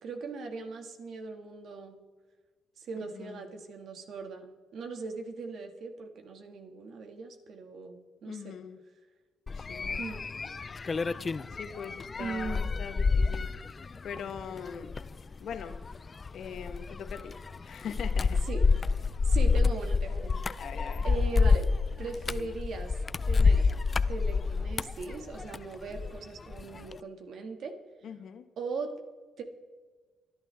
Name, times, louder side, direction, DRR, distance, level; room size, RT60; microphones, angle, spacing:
voice 1, 0.0-2.0 2.8-4.5 4.7-8.6 10.0-10.2 12.2-12.8 18.5-19.0 19.2-20.7 21.0-21.7 22.0-22.9 23.3-23.7 24.1-27.8 28.6-28.9 29.4-29.5, right 4 dB, 65° right, 5 dB, 2.0 m, -39 dB
voice 2, 8.2-8.8 9.5-10.0 11.5-13.5 14.0-14.9 15.4-15.8 16.3-18.4 20.6-21.0 28.0-28.5, left 7 dB, 65° left, 9 dB, 1.2 m, -42 dB
sound 1, 9.5-26.2 26.5-27.0, left 4 dB, 35° left, 0.4 m, -28 dB
24.0 x 11.0 x 3.5 m, 1.3 s
cardioid pair, 90°, 0 cm